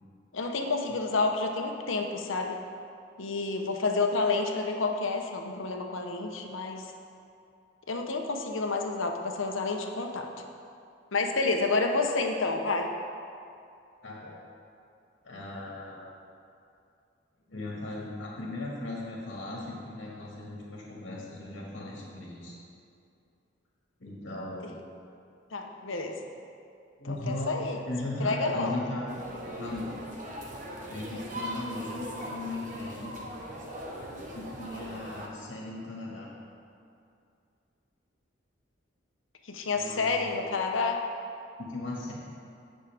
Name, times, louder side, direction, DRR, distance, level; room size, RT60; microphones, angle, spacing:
voice 1, 0.3-2.6 3.2-6.9 7.9-10.3 11.1-12.9 25.5-26.2 27.1-27.8 28.2-28.8 39.5-41.0, left 3 dB, 90° left, 3 dB, 1.0 m, -29 dB
voice 2, 14.0-14.4 15.2-16.0 17.5-22.5 24.0-24.7 27.0-27.5 27.9-29.1 29.5-30.0 30.9-33.2 34.3-36.3 39.7-40.3 41.6-42.1, left 2 dB, 70° left, -4 dB, 1.8 m, -37 dB
sound 1, 29.1-35.3, equal, 40° right, 1.2 m, -40 dB
17.0 x 6.4 x 3.5 m, 2.5 s
head